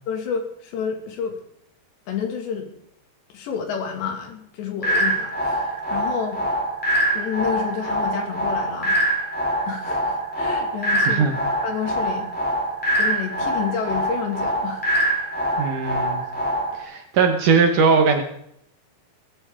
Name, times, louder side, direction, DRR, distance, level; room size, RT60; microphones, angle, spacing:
voice 1, 0.1-1.4 2.1-2.7 3.3-5.6 5.9-6.4 7.1-9.0 9.7-12.3 13.0-14.8, left 7 dB, 90° left, 4 dB, 4.5 m, -29 dB
sound 1, 4.8-16.8, right 1 dB, ahead, 3.3 m, -24 dB
voice 2, 11.0-11.4 15.6-16.2 16.8-18.2, right 5 dB, 65° right, 4 dB, 2.3 m, -19 dB
18.5 x 14.0 x 3.7 m, 0.71 s
omnidirectional pair, 4.9 m